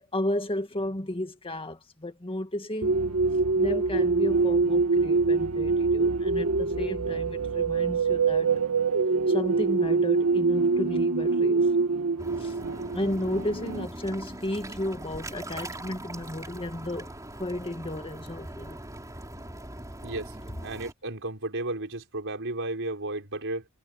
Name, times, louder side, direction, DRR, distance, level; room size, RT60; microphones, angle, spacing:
voice 1, 0.0-3.0 3.6-8.5 9.3-11.7 12.4-12.5 12.9-17.1 17.4-18.8, left 1 dB, 25° left, 2.0 m, -33 dB
sound 1, 2.8-13.9, right 4 dB, 75° right, 1.7 m, -25 dB
sound 2, 12.2-20.9, right 1 dB, 15° right, 4.2 m, -41 dB
voice 2, 20.0-20.4 20.6-23.7, right 2 dB, 60° right, 5.4 m, -33 dB
head